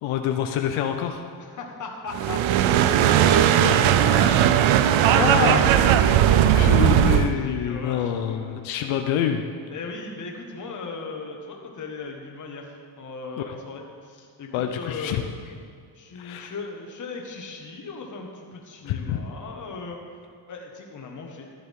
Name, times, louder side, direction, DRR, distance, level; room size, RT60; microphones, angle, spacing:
voice 1, 0.0-1.2 5.1-5.6 6.5-9.4 13.4-13.5 14.5-15.2 16.2-16.5 18.9-19.2, left 9 dB, 85° left, 5 dB, 0.8 m, -26 dB
voice 2, 1.4-4.5 5.0-5.6 6.4-8.6 9.7-15.2 15.9-20.0 20.5-21.5, left 4 dB, 40° left, 1 dB, 1.7 m, -37 dB
sound 1, 2.1-7.3, right 10 dB, 85° right, 0.7 m, -18 dB
14.5 x 10.5 x 3.7 m, 2.1 s
cardioid pair, 140°, 47 cm